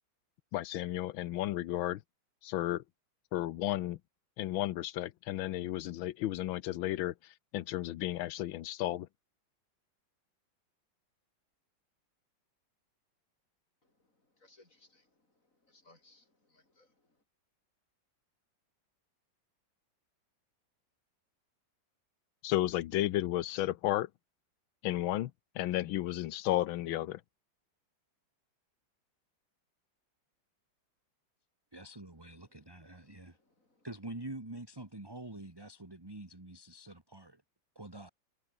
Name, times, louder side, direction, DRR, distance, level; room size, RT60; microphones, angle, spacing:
voice 1, 0.5-2.0 2.4-2.8 3.3-4.0 4.4-7.1 7.5-9.1 22.4-24.1 24.8-27.2, left 14 dB, 90° left, 1.6 m, -33 dB
voice 2, 14.4-15.1 15.7-16.9 33.0-33.7, left 2 dB, 40° left, 6.7 m, -65 dB
voice 3, 31.7-33.4 33.8-37.4 37.8-38.1, right 2 dB, 10° right, 2.1 m, -46 dB
omnidirectional pair, 2.1 m